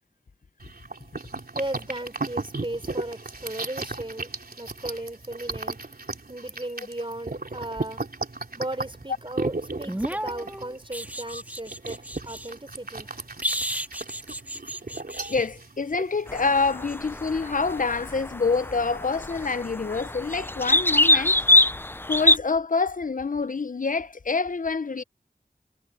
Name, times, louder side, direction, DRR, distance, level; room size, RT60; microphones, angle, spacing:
sound 1, 0.6-16.4, right 3 dB, 65° right, 3.3 m, -35 dB
voice 1, 1.5-4.3 4.6-5.8 6.3-8.0 8.5-13.1, right 1 dB, 30° right, 3.9 m, -36 dB
sound 2, 9.8-12.5 13.4-15.5 18.1-18.3, equal, 10° right, 1.8 m, -33 dB
voice 2, 15.3-21.4 22.1-25.0, left 4 dB, 55° left, 0.7 m, -26 dB
sound 3, 16.3-22.4, left 1 dB, 15° left, 0.4 m, -23 dB
wide cardioid pair, 40°, 16 cm